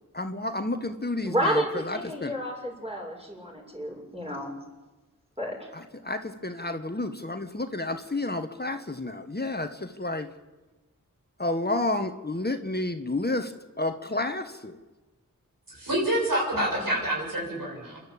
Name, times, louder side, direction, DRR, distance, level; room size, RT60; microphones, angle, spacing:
voice 1, 0.1-2.3 5.7-10.3 11.4-13.5 13.8-14.8, left 2 dB, 30° left, 7 dB, 1.6 m, -30 dB
voice 2, 1.2-4.5 5.4-5.6, equal, 20° right, -1 dB, 6.9 m, -30 dB
voice 3, 15.7-18.0, right 1 dB, 80° right, -2 dB, 7.4 m, -27 dB
27.5 x 11.5 x 8.6 m, 1.2 s
cardioid pair, 40°, 33 cm